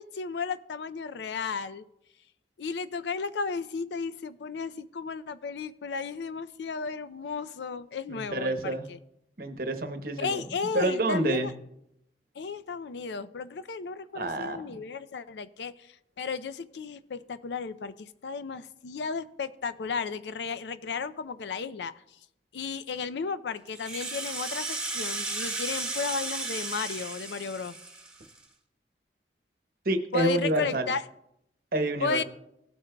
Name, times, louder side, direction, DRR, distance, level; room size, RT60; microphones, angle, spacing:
voice 1, 0.0-1.9 2.6-9.0 10.2-11.5 12.4-21.9 22.5-27.8 30.1-31.0 32.0-32.2, left 5 dB, 75° left, 14 dB, 0.4 m, -34 dB
voice 2, 8.1-8.9 9.4-10.4 10.7-11.5 14.1-14.6 29.8-30.9 31.7-32.2, right 2 dB, 55° right, 7 dB, 0.9 m, -28 dB
Rattle (instrument), 23.7-28.4, right 3 dB, 5° right, 1.1 m, -34 dB
17.5 x 8.6 x 2.2 m, 0.80 s
head